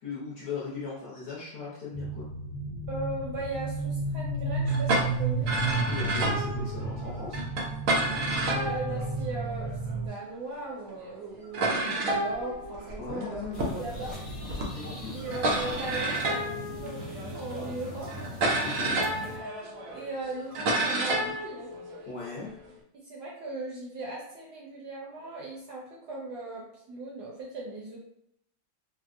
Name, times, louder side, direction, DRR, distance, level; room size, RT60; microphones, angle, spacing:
voice 1, 0.0-2.3 5.9-7.4 13.0-15.2 18.6-19.0 22.1-22.5, left 4 dB, 65° left, -6 dB, 1.0 m, -39 dB
sound 1, 1.9-10.1, right 3 dB, 50° right, 0.8 m, -32 dB
voice 2, 2.9-5.5 8.5-14.1 15.1-18.1 19.9-21.7 22.9-28.0, right 2 dB, 70° right, -2 dB, 1.0 m, -38 dB
sound 2, 4.7-10.0 10.7-10.8 11.0-11.1 11.5-22.7, right 2 dB, 85° right, 0.7 m, -31 dB
sound 3, 13.5-19.4, equal, 40° left, 1.1 m, -40 dB
4.2 x 2.1 x 2.4 m, 0.74 s
omnidirectional pair, 2.2 m